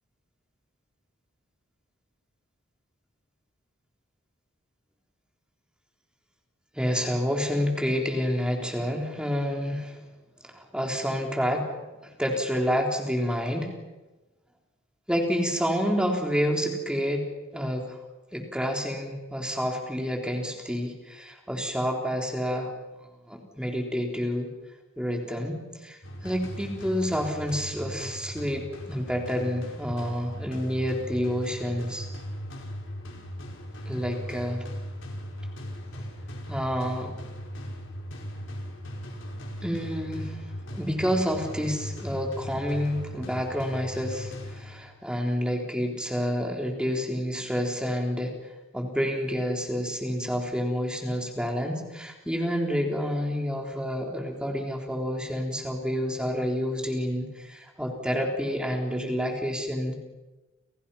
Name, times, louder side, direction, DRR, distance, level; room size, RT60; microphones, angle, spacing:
voice 1, 6.7-10.0 10.4-11.7 12.0-13.7 15.1-18.0 18.3-22.7 23.3-24.5 25.0-32.1 33.9-34.7 36.5-37.1 39.6-40.4 40.7-48.3 48.7-59.9, equal, 5° right, 2 dB, 3.9 m, -29 dB
sound 1, 26.0-45.0, equal, 60° left, 5.1 m, -38 dB
29.5 x 29.5 x 5.8 m, 1.1 s
head